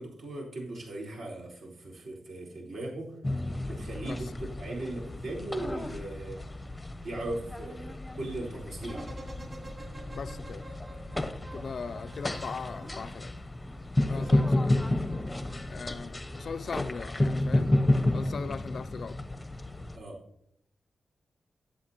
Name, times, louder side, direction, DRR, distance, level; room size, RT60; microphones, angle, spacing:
voice 1, 0.0-3.1 3.6-6.4 7.0-9.1 11.5-11.7 14.1-14.4 19.9-20.2, right 2 dB, 70° right, 4.3 m, -38 dB
sound 1, 3.2-20.0, left 1 dB, 10° left, 0.7 m, -31 dB
sound 2, 8.8-13.3 14.1-15.9 16.2-16.3, right 1 dB, 30° right, 3.6 m, -48 dB
voice 2, 10.1-10.7 11.5-13.3 14.1-14.8 15.7-17.8 18.1-19.2, left 5 dB, 50° left, 0.3 m, -39 dB
22.0 x 8.0 x 2.9 m
wide cardioid pair, 170°, 0 cm